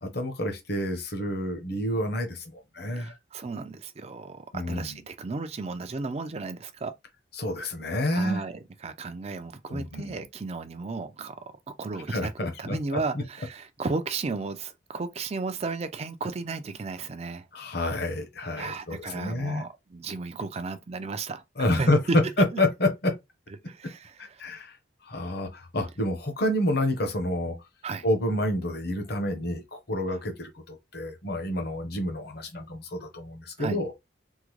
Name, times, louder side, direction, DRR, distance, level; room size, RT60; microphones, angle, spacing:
voice 1, 0.0-3.2 4.5-5.0 7.4-8.4 9.7-10.1 12.1-13.2 17.5-19.6 21.6-22.0 22.4-23.1 24.2-24.8 25.0-27.6 28.0-33.9, left 1 dB, 55° left, 0.9 m, -29 dB
voice 2, 2.9-6.9 8.1-11.4 11.8-12.3 12.6-17.5 18.6-22.2 23.7-24.2 27.8-28.1 33.6-33.8, right 3 dB, 35° right, 0.4 m, -34 dB
3.6 x 2.1 x 3.1 m
head